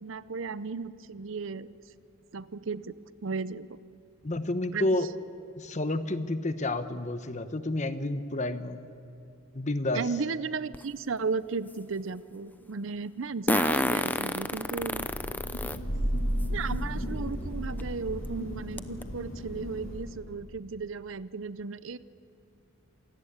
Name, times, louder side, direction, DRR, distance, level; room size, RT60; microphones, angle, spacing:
voice 1, 0.0-1.7 2.3-2.9 3.2-3.8 4.7-4.9 9.9-15.1 16.5-22.0, right 4 dB, 65° right, 16 dB, 0.6 m, -35 dB
voice 2, 4.2-5.1 5.6-8.9 9.5-10.1, left 2 dB, 35° left, 10 dB, 1.0 m, -30 dB
Fart, 10.7-10.8 13.5-15.8 16.4-16.5 17.8-17.9 18.2-18.3 18.8-19.0, left 1 dB, 10° left, 0.6 m, -28 dB
Thunder / Rain, 14.5-20.3, equal, 80° left, 7.5 m, -34 dB
27.5 x 18.0 x 8.8 m, 2.8 s
head